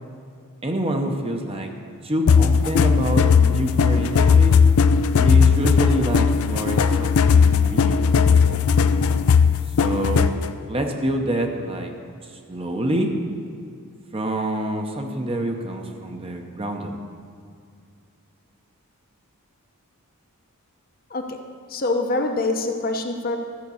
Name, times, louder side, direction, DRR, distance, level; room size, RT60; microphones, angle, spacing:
voice 1, 0.6-1.7 2.0-4.5 5.2-8.6 9.8-10.3 10.7-11.9 12.5-13.1 14.1-17.0, right 1 dB, 25° right, 3 dB, 0.8 m, -27 dB
sound 1, 2.3-10.5, left 6 dB, 70° left, 0.4 m, -17 dB
voice 2, 21.7-23.4, left 2 dB, 40° left, 4 dB, 0.8 m, -24 dB
13.5 x 5.3 x 7.0 m, 2.3 s
head